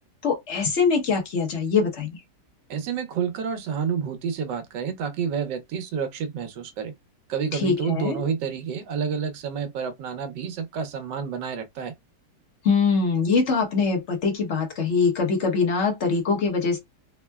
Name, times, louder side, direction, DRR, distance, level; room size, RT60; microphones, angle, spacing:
voice 1, 0.2-2.2 7.5-8.2 12.6-16.8, left 5 dB, 50° left, 1.0 m, -23 dB
voice 2, 2.7-6.9 7.3-11.9, right 6 dB, 90° right, 1.4 m, -29 dB
3.5 x 2.1 x 2.2 m
omnidirectional pair, 1.9 m